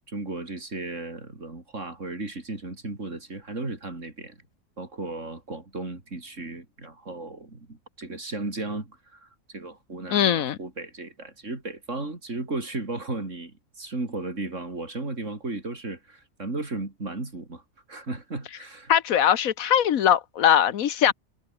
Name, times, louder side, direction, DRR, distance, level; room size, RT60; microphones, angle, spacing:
voice 1, 0.1-4.4 4.8-17.6 17.9-18.9 21.1-21.2, right 2 dB, 60° right, 4.7 m, -35 dB
voice 2, 10.1-10.6 18.9-21.1, left 9 dB, 80° left, 1.4 m, -21 dB
omnidirectional pair, 1.4 m